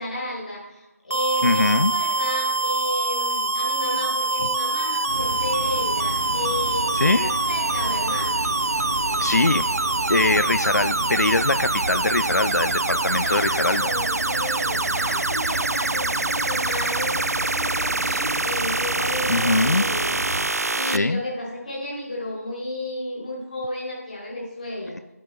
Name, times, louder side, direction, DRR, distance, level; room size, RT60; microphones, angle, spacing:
voice 1, 0.0-8.3 13.2-20.2 20.7-25.1, left 1 dB, 30° left, -4 dB, 2.2 m, -32 dB
sound 1, 1.1-21.0, right 3 dB, 70° right, 0.4 m, -25 dB
voice 2, 1.4-1.9 6.9-7.3 9.2-9.7 10.1-13.9 19.3-19.9 20.9-21.2, left 2 dB, 85° left, 12 dB, 0.4 m, -22 dB
sound 2, 5.1-20.4, right 1 dB, 15° right, 0.7 m, -32 dB
9.9 x 9.7 x 2.9 m, 1.0 s
figure-of-eight pair, 170°, 9 cm